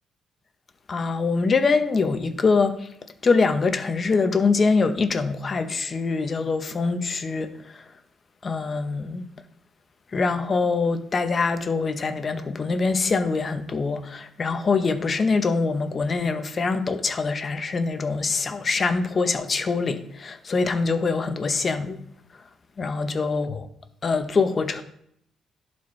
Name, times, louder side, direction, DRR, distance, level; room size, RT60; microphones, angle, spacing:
voice 1, 0.9-2.9 3.2-7.8 8.4-9.2 10.1-22.0 22.8-23.7 24.0-24.8, left 4 dB, 40° left, 0.8 m, -24 dB
11.5 x 4.3 x 3.2 m
cardioid pair, 90°, 0 cm